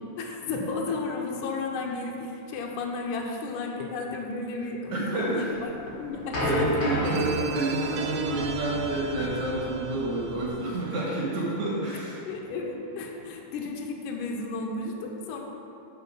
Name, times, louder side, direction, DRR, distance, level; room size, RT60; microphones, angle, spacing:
voice 1, 0.2-5.7 6.0-7.4 12.3-15.4, left 3 dB, 75° left, 1 dB, 2.2 m, -33 dB
voice 2, 4.5-5.7 6.4-12.3, right 2 dB, 65° right, -5 dB, 2.9 m, -29 dB
sound 1, 5.6-10.5, left 1 dB, 45° left, 2.0 m, -32 dB
sound 2, 7.0-11.8, right 6 dB, 90° right, 2.3 m, -39 dB
8.0 x 5.1 x 5.5 m, 2.8 s
omnidirectional pair, 3.8 m